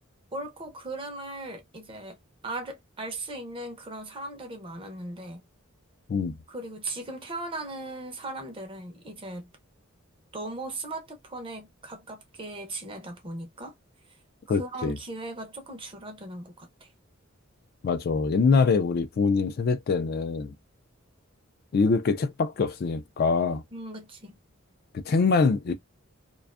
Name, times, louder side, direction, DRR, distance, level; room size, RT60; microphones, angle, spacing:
voice 1, 0.3-5.4 6.5-9.5 10.3-13.7 14.5-16.9 23.7-24.4, right 2 dB, 25° right, 0.6 m, -38 dB
voice 2, 14.5-15.0 17.8-20.5 21.7-23.6 24.9-25.7, left 4 dB, 45° left, 0.3 m, -24 dB
2.4 x 2.3 x 2.3 m
head